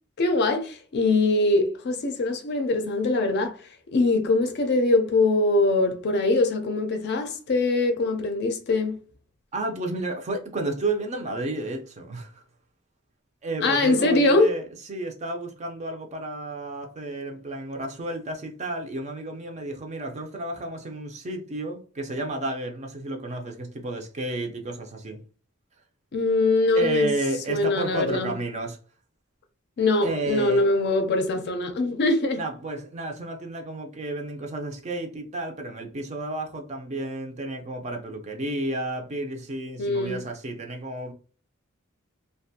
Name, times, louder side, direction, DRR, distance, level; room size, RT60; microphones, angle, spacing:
voice 1, 0.2-3.6 3.9-9.0 13.6-14.5 26.1-27.1 27.5-28.3 29.8-32.4 39.8-40.2, left 2 dB, 55° left, 0.5 m, -22 dB
voice 2, 9.5-12.4 13.4-25.2 26.7-28.8 30.0-30.7 32.4-41.1, right 2 dB, 35° right, 0.5 m, -32 dB
2.5 x 2.2 x 2.7 m
head